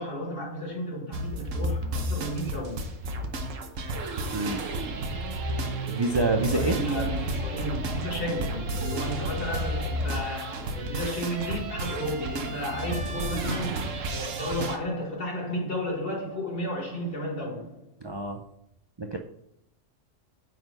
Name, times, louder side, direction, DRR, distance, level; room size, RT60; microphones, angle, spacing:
voice 1, 0.0-2.9 6.5-17.9, equal, 45° left, 2.3 m, -33 dB
sound 1, 1.1-14.8, right 1 dB, 80° right, 1.3 m, -31 dB
voice 2, 4.3-4.7 5.9-6.8 18.0-18.4 19.0-19.2, right 2 dB, 40° right, 0.4 m, -27 dB
9.3 x 4.2 x 5.3 m
omnidirectional pair, 1.3 m